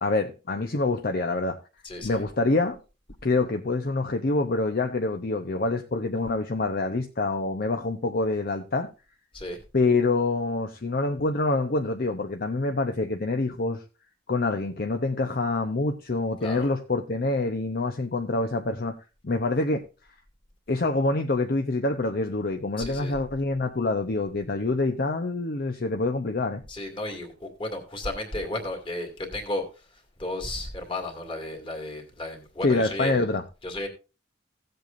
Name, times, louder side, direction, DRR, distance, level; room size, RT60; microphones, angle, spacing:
voice 1, 0.0-1.6 2.0-2.8 3.2-8.9 9.7-13.8 14.3-18.9 19.2-19.8 20.7-26.6 32.6-33.4, left 2 dB, 50° left, 0.7 m, -26 dB
voice 2, 1.8-2.2 9.3-9.6 16.4-16.7 22.8-23.1 26.7-29.7 30.2-33.3 33.6-33.9, left 2 dB, 25° left, 2.2 m, -33 dB
16.5 x 7.8 x 2.6 m
head